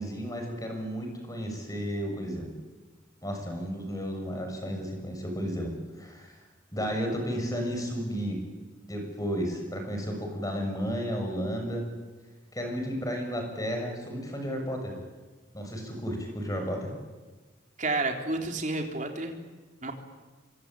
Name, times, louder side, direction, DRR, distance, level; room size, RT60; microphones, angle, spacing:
voice 1, 0.0-2.5 3.2-6.4 6.7-8.4 8.9-11.9 12.5-15.0 15.5-16.9, equal, 20° left, 3 dB, 6.8 m, -33 dB
voice 2, 17.8-19.3 19.8-19.9, right 2 dB, 40° right, 3 dB, 3.6 m, -30 dB
26.0 x 25.0 x 9.0 m, 1.3 s
head